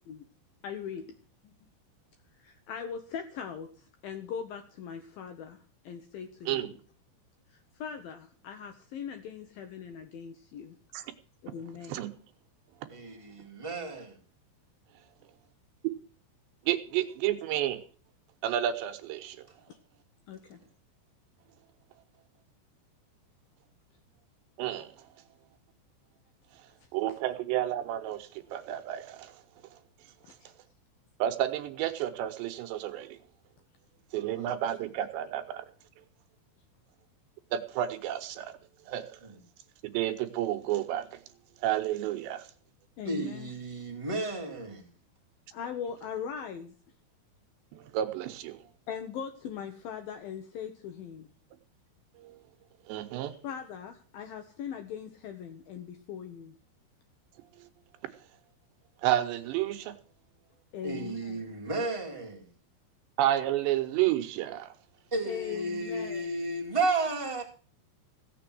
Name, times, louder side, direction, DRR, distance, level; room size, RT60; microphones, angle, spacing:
voice 1, 0.6-1.2 2.4-6.7 7.5-10.8 11.4-12.0 19.7-19.8 20.3-20.6 27.1-27.2 30.4-30.5 43.0-43.5 45.5-46.7 48.9-51.3 53.4-56.5 60.7-61.4 65.3-66.3, left 7 dB, 70° left, 2.3 m, -40 dB
voice 2, 12.9-14.2 34.1-34.7 39.2-39.4 43.0-44.9 53.2-53.4 60.8-62.5 65.1-67.4, right 2 dB, 15° right, 1.1 m, -33 dB
voice 3, 16.7-17.8 18.4-19.4 24.6-24.9 26.9-29.3 31.2-33.2 34.1-35.6 37.5-38.5 38.9-39.2 39.9-41.1 41.6-42.4 47.9-48.6 52.9-53.3 59.0-59.9 63.2-64.7, right 12 dB, 75° right, 3.0 m, -30 dB
16.0 x 6.9 x 7.7 m
omnidirectional pair, 5.4 m